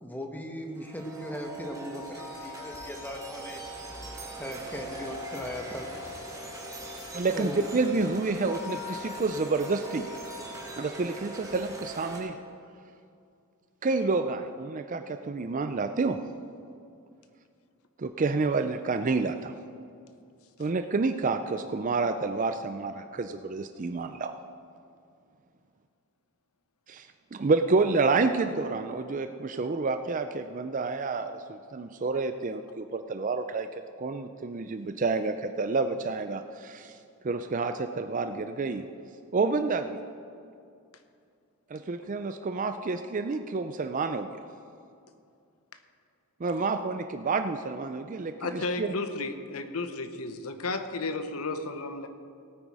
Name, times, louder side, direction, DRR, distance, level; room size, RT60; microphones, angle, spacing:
voice 1, 0.0-3.8 4.3-5.9 7.3-7.7, left 1 dB, 10° left, 3 dB, 1.2 m, -38 dB
sound 1, 0.7-12.2, right 1 dB, 15° right, 2.4 m, -40 dB
voice 2, 7.1-10.1 10.8-12.4 13.8-16.2 18.0-19.5 20.6-24.3 26.9-33.7 34.0-37.0 37.2-38.8 39.3-40.0 41.7-44.4 46.4-48.9, right 3 dB, 35° right, 8 dB, 0.4 m, -29 dB
voice 3, 48.4-52.1, left 3 dB, 80° left, 8 dB, 1.0 m, -33 dB
17.0 x 9.2 x 4.8 m, 2.4 s
head